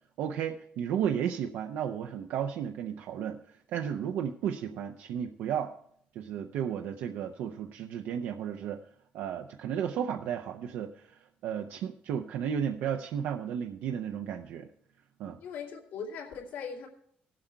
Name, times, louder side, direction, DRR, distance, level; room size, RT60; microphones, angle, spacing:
voice 1, 0.2-3.4 3.7-5.7 6.1-8.8 9.1-14.7 15.2-15.4, right 8 dB, 80° right, 4 dB, 0.6 m, -33 dB
voice 2, 15.4-16.9, left 6 dB, 80° left, -1 dB, 2.7 m, -39 dB
17.0 x 7.7 x 4.5 m, 0.66 s
cardioid pair, 155°, 3 cm